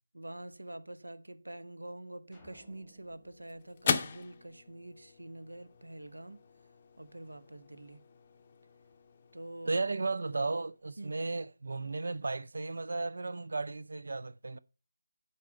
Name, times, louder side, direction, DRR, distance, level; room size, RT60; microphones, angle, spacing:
voice 1, 0.1-6.4 7.0-8.0 9.3-9.8 11.0-11.2, right 1 dB, 70° right, 0.8 m, -46 dB
sound 1, 2.3-4.9, left 1 dB, ahead, 1.6 m, -63 dB
sound 2, 2.6-11.1, left 5 dB, 25° left, 0.6 m, -41 dB
voice 2, 9.7-14.6, right 3 dB, 55° right, 0.4 m, -34 dB
9.3 x 4.3 x 6.4 m
figure-of-eight pair, 155°, 0 cm